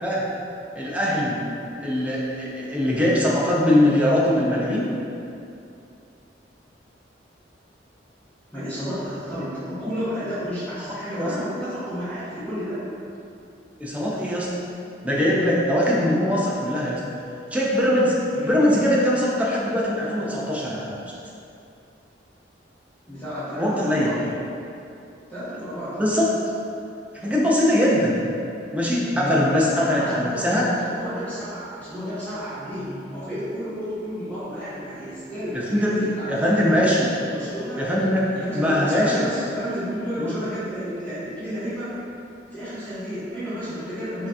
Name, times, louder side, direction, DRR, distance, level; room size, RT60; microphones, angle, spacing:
voice 1, 0.8-1.4 1.8-4.8 11.1-11.3 13.8-14.6 15.0-17.0 17.5-20.9 23.6-24.1 26.0-26.3 27.2-28.2 28.7-30.6 35.7-35.9 36.3-37.1 37.8-39.3 40.2-40.4, left 1 dB, 10° right, -6 dB, 0.5 m, -21 dB
voice 2, 8.5-12.8 18.3-18.6 23.1-24.3 25.3-26.0 29.1-36.9 37.3-37.9 38.3-41.9 42.5-44.3, equal, 10° left, -14 dB, 1.1 m, -31 dB
5.6 x 2.8 x 2.3 m, 2.6 s
head